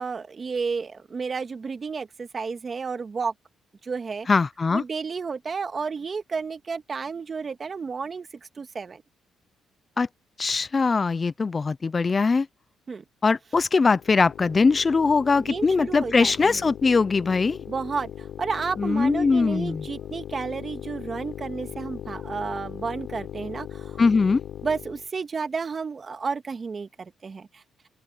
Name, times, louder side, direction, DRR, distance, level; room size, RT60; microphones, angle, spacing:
voice 1, 0.0-3.3 3.8-4.3 4.7-8.3 8.6-9.0 12.9-13.0 15.4-16.6 17.7-24.0 24.6-27.6, right 5 dB, 40° right, 1.9 m, -31 dB
voice 2, 4.3-4.8 10.0-10.1 10.4-12.5 13.2-17.6 18.8-19.8 24.0-24.4, left 4 dB, 30° left, 0.4 m, -21 dB
sound 1, 14.0-25.1, left 10 dB, 75° left, 3.7 m, -39 dB
open air
cardioid pair, 90°, 0 cm